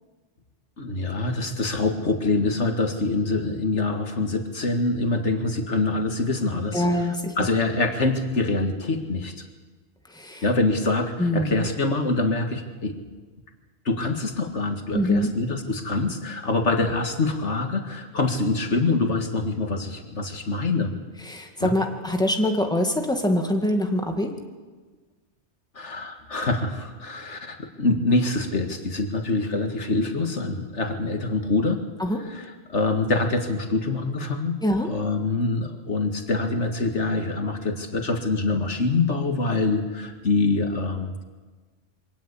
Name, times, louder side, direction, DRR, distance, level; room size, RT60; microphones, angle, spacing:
voice 1, 0.8-6.8 7.4-9.3 10.4-13.0 13.9-20.9 21.6-21.7 25.8-31.8 32.3-41.2, left 3 dB, 80° left, 5 dB, 2.2 m, -25 dB
voice 2, 6.7-7.3 10.1-10.4 11.2-11.7 14.9-15.3 21.2-24.3 32.0-32.2 34.6-34.9, left 1 dB, 5° left, 3 dB, 2.1 m, -24 dB
24.0 x 18.0 x 8.4 m, 1.3 s
omnidirectional pair, 1.2 m